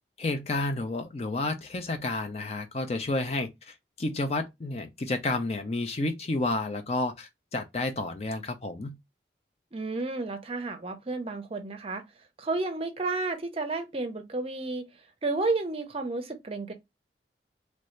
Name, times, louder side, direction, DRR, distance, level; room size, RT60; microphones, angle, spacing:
voice 1, 0.2-8.9, left 2 dB, 35° left, 0.5 m, -31 dB
voice 2, 9.7-12.0 12.4-14.9 15.2-16.7, right 3 dB, 30° right, 0.6 m, -31 dB
3.2 x 2.7 x 3.1 m
head